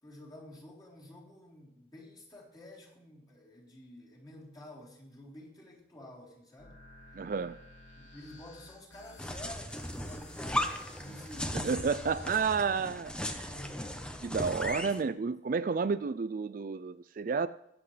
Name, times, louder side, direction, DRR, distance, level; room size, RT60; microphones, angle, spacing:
voice 1, 0.0-6.8 8.0-12.9 13.4-14.0 14.8-15.1, left 1 dB, 20° left, 3.6 m, -50 dB
sound 1, 6.6-12.8, left 1 dB, 85° left, 2.6 m, -53 dB
voice 2, 7.1-7.6 11.5-13.5 14.2-17.5, right 5 dB, 45° right, 0.4 m, -31 dB
sound 2, 9.2-15.0, left 1 dB, 5° left, 0.9 m, -37 dB
21.5 x 8.1 x 3.3 m
head